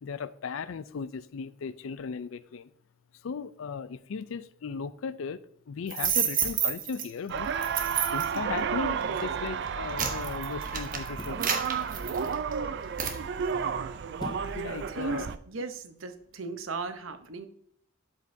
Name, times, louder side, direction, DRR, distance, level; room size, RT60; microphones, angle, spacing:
voice 1, 0.0-2.7 3.2-5.4 5.7-7.5 8.1-11.6 14.5-15.3, left 5 dB, 85° left, 0.4 m, -37 dB
sound 1, 5.9-7.0 7.6-8.4 9.0-9.2 9.7-12.5 13.0-13.2, right 7 dB, 45° right, 1.0 m, -29 dB
sound 2, 7.3-15.4, right 6 dB, 60° right, 0.4 m, -32 dB
sound 3, 11.2-11.5 14.2-14.6 15.1-15.2, left 2 dB, 20° left, 0.4 m, -42 dB
voice 2, 14.9-17.5, right 3 dB, 85° right, 0.8 m, -36 dB
11.5 x 5.3 x 2.7 m
head